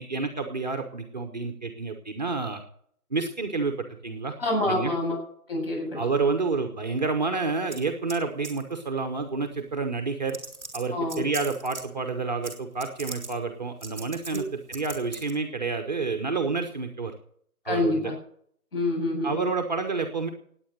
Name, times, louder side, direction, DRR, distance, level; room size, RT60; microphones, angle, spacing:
voice 1, 0.0-2.6 3.1-4.3 4.6-4.9 5.9-10.4 10.7-17.1 17.6-18.1 19.2-20.3, right 4 dB, 30° right, 5 dB, 1.2 m, -29 dB
voice 2, 4.4-5.2 5.5-6.0 10.9-11.3 14.3-14.4 17.7-18.1 18.7-19.4, left 2 dB, 40° left, 1 dB, 7.9 m, -27 dB
sound 1, 7.7-8.2 8.4-8.7 9.7-9.8 10.3-11.8 12.4-12.5 12.8-13.3 13.8-14.4 14.7-15.3, right 3 dB, ahead, 1.2 m, -39 dB
18.0 x 9.2 x 6.5 m, 0.64 s
figure-of-eight pair, 155°, 45 cm